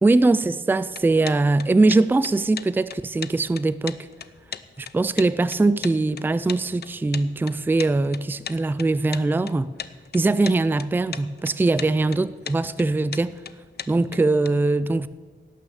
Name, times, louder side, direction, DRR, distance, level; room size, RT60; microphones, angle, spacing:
voice 1, 0.0-4.0 4.8-9.7 10.1-13.4 13.9-15.1, right 2 dB, 10° right, 0.3 m, -21 dB
sound 1, 0.9-14.5, left 7 dB, 65° left, 0.5 m, -37 dB
17.5 x 6.4 x 7.1 m
wide cardioid pair, 155°, 18 cm